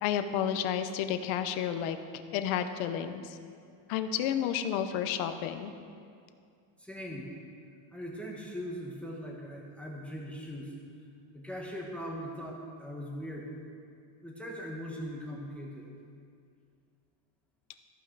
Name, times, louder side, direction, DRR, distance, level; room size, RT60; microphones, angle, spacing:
voice 1, 0.0-2.0 2.3-3.4 3.9-5.7, left 9 dB, 85° left, 9 dB, 0.8 m, -31 dB
voice 2, 6.8-7.3 7.9-10.7 11.3-13.5 14.2-15.9, equal, 5° left, -2 dB, 1.1 m, -40 dB
14.0 x 5.8 x 4.6 m, 2.3 s
cardioid pair, 130°, 48 cm